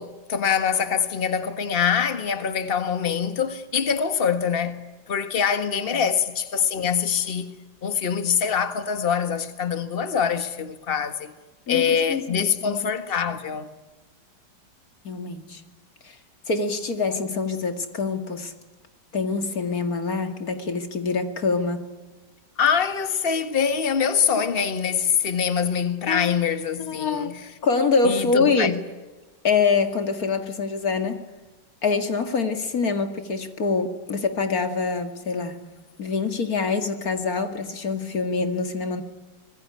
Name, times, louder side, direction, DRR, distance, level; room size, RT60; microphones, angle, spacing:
voice 1, 0.0-4.8 5.1-7.5 7.8-11.3 11.7-13.7 22.6-27.5 28.0-28.8, left 7 dB, 30° left, 1.7 m, -24 dB
voice 2, 11.7-12.8 15.0-15.6 16.0-16.2 16.5-18.5 19.1-21.9 26.1-26.4 26.8-27.3 27.6-28.8 29.4-31.2 31.8-35.6 36.0-39.0, left 4 dB, 50° left, 2.6 m, -25 dB
25.0 x 21.0 x 9.9 m
omnidirectional pair, 2.0 m